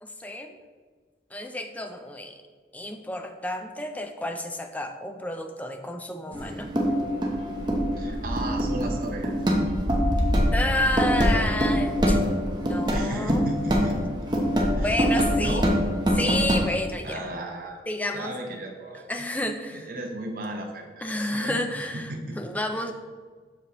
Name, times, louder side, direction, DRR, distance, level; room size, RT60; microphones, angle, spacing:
voice 1, 0.0-0.6 1.3-2.4 2.7-6.7 10.5-13.4 14.8-15.6 16.1-17.2 17.9-18.3 19.1-19.9 21.0-22.9, left 1 dB, 10° left, 5 dB, 0.5 m, -30 dB
sound 1, 6.3-16.6, equal, 25° right, 0.9 m, -24 dB
voice 2, 7.9-9.4 12.9-14.0 14.7-15.0 15.3-15.7 17.0-17.8 18.1-19.3 19.7-21.6 21.9-22.4 22.8-22.9, right 1 dB, 50° right, 1 dB, 1.0 m, -35 dB
7.4 x 6.7 x 3.0 m, 1.5 s
head